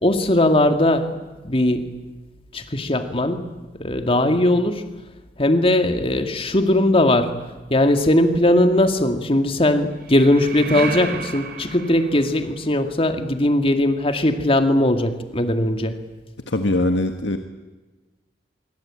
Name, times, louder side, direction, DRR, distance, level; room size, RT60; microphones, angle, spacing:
voice 1, 0.0-1.2 1.4-2.0 2.5-3.5 3.8-4.8 5.4-7.4 7.7-16.0, left 1 dB, 30° left, 7 dB, 2.3 m, -19 dB
sound 1, 7.9-8.7 10.0-12.8, right 4 dB, 60° right, 4.3 m, -33 dB
voice 2, 16.5-17.4, left 1 dB, 85° left, 7 dB, 1.6 m, -21 dB
25.0 x 23.5 x 9.0 m, 1.2 s
head